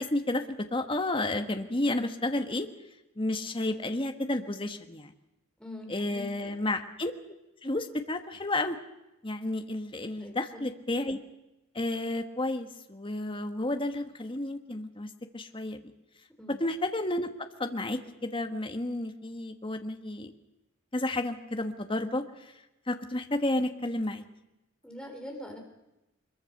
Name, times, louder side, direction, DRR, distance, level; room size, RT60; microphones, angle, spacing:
voice 1, 0.0-2.7 3.2-5.1 5.9-7.1 7.6-8.8 9.2-11.2 11.7-15.8 16.6-20.3 20.9-24.2, left 2 dB, 25° left, 6 dB, 1.4 m, -31 dB
voice 2, 5.6-6.7 10.2-10.7 16.4-16.6 24.8-25.6, left 1 dB, 5° left, 2 dB, 3.9 m, -44 dB
23.5 x 22.5 x 6.6 m, 0.94 s
head